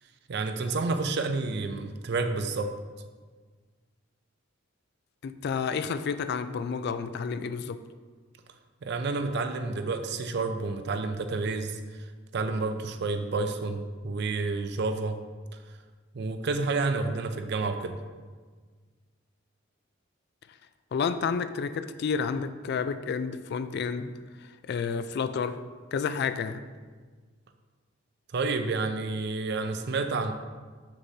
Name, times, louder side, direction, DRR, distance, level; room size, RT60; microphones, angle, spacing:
voice 1, 0.3-2.7 8.8-12.1 12.3-15.2 16.1-18.0 28.3-30.3, right 3 dB, 55° right, 8 dB, 0.4 m, -29 dB
voice 2, 5.2-7.8 20.9-24.1 24.4-25.6 25.9-26.6, left 6 dB, 55° left, 12 dB, 0.3 m, -30 dB
7.4 x 6.6 x 2.7 m, 1.5 s
head